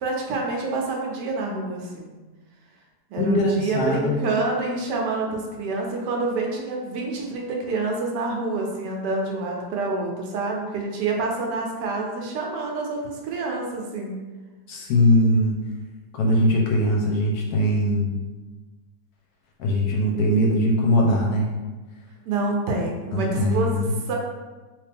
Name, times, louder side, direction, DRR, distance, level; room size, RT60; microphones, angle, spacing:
voice 1, 0.0-2.1 3.1-14.2 22.3-24.2, right 3 dB, 80° right, 0 dB, 1.2 m, -27 dB
voice 2, 3.2-4.1 14.7-15.6 16.1-18.2 19.6-21.5 23.1-23.9, left 1 dB, 70° left, 0 dB, 1.0 m, -21 dB
3.1 x 2.9 x 3.4 m, 1.2 s
omnidirectional pair, 1.9 m